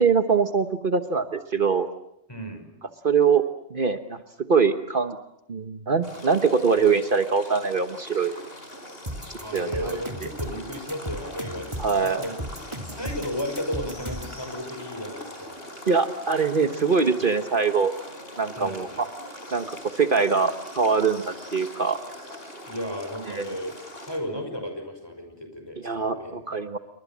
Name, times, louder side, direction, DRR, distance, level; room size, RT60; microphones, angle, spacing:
voice 1, 0.0-1.9 3.0-3.4 3.7-4.2 4.5-5.2 5.5-8.3 9.5-10.0 11.8-12.2 15.9-17.9 18.4-19.1 19.5-22.0 23.3-23.5 25.8-26.8, right 5 dB, 50° right, 8 dB, 1.4 m, -23 dB
voice 2, 2.3-2.7 9.3-12.4 12.8-15.6 18.6-19.0 22.7-26.4, left 1 dB, 20° left, 6 dB, 5.8 m, -34 dB
sound 1, 6.0-24.2, left 1 dB, 60° left, 5.2 m, -42 dB
sound 2, 9.1-14.4, right 1 dB, 25° right, 2.9 m, -35 dB
29.0 x 24.0 x 7.3 m, 0.80 s
omnidirectional pair, 1.2 m